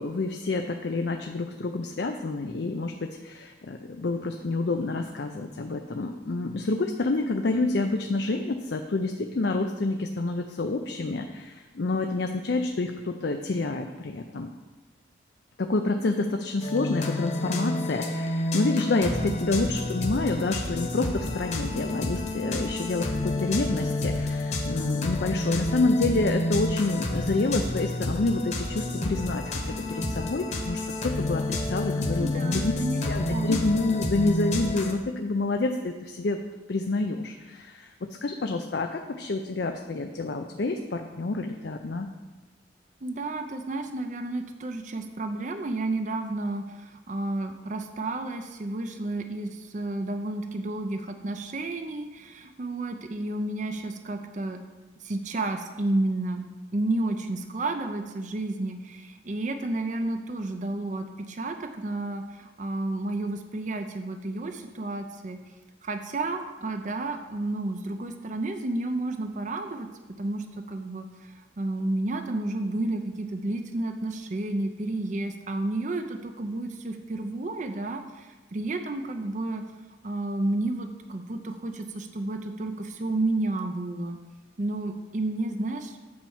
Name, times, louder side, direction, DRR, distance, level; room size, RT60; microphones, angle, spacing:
voice 1, 0.0-14.5 15.6-32.7 33.1-36.4 36.7-37.9 38.2-42.1, left 2 dB, 60° left, 4 dB, 0.5 m, -28 dB
sound 1, 16.6-34.9, left 1 dB, 35° left, 1.1 m, -30 dB
voice 2, 19.0-19.4 32.2-33.5 43.0-54.6 55.0-56.5 56.7-65.4 65.8-69.9 70.2-71.1 71.6-79.6 80.0-84.2 84.6-86.0, right 2 dB, 40° right, 6 dB, 0.5 m, -31 dB
8.6 x 4.5 x 7.1 m, 1.2 s
head